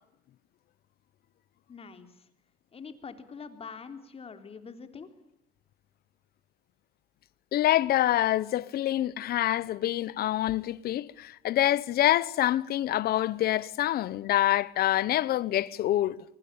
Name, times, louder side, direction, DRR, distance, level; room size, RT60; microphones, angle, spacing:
voice 1, 1.7-2.3 2.7-5.1, left 5 dB, 35° left, 3.5 m, -44 dB
voice 2, 7.5-16.2, left 13 dB, 65° left, 1.1 m, -26 dB
24.5 x 24.5 x 8.9 m
cardioid pair, 110°, 17 cm